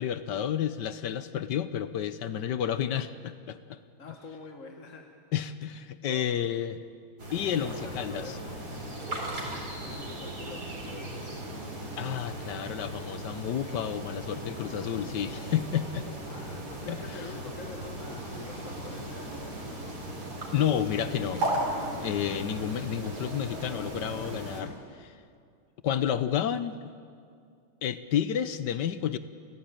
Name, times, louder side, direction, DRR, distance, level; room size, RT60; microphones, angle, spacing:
voice 1, 0.0-3.8 5.3-6.8 7.3-8.3 12.0-16.1 16.9-17.0 20.5-21.6 22.0-25.1 25.8-26.8 27.8-29.2, left 9 dB, 65° left, 13 dB, 1.2 m, -30 dB
voice 2, 4.0-5.0 6.0-6.4 7.5-8.6 9.3-11.6 16.2-20.0, left 4 dB, 40° left, 3 dB, 1.6 m, -46 dB
sound 1, 7.2-24.6, right 1 dB, 45° right, 4.7 m, -37 dB
29.0 x 15.0 x 9.0 m, 2.3 s
omnidirectional pair, 2.3 m